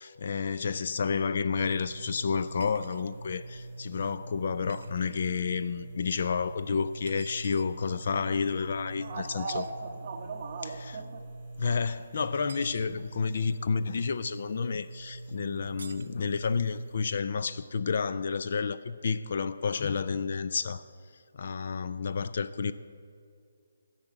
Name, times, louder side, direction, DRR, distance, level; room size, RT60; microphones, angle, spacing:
voice 1, 0.0-9.6 10.6-11.0 11.6-20.8 21.1-22.7, left 5 dB, 45° left, 0.3 m, -30 dB
sound 1, 1.5-17.0, right 2 dB, 5° left, 2.0 m, -44 dB
sound 2, 2.6-3.1 4.7-4.9 7.1-7.7 9.5-9.7 12.3-12.9 15.8-16.1, right 4 dB, 65° right, 0.6 m, -49 dB
voice 2, 9.0-11.3, right 4 dB, 30° right, 1.1 m, -38 dB
12.0 x 6.0 x 9.0 m
hypercardioid pair, 175°, 0 cm